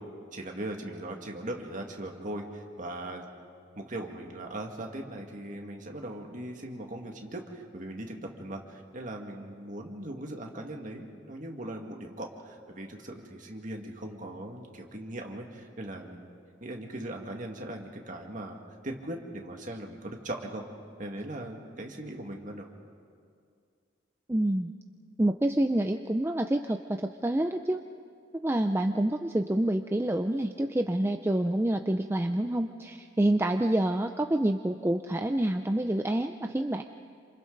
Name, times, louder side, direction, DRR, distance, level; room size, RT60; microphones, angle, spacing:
voice 1, 0.3-3.3 3.8-16.3 16.6-18.6 18.8-20.6 21.0-22.7, right 1 dB, 40° right, 2 dB, 2.0 m, -39 dB
voice 2, 24.3-24.7 25.2-27.8 28.4-36.8, right 1 dB, 10° right, 5 dB, 0.4 m, -27 dB
28.5 x 26.5 x 4.0 m, 2.2 s
head